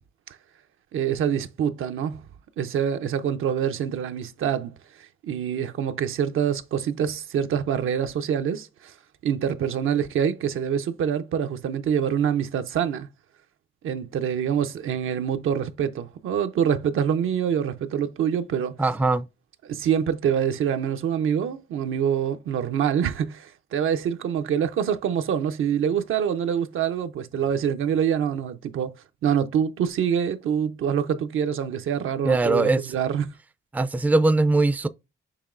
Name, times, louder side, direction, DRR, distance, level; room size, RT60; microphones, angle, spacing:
voice 1, 0.9-2.2 2.6-8.9 9.2-13.1 13.8-18.8 19.6-28.9 29.2-33.3, right 8 dB, 75° right, 0.6 m, -25 dB
voice 2, 18.8-19.3 32.2-32.9 33.7-34.9, right 2 dB, 10° right, 0.4 m, -21 dB
6.7 x 3.1 x 2.4 m
cardioid pair, 80°, 21 cm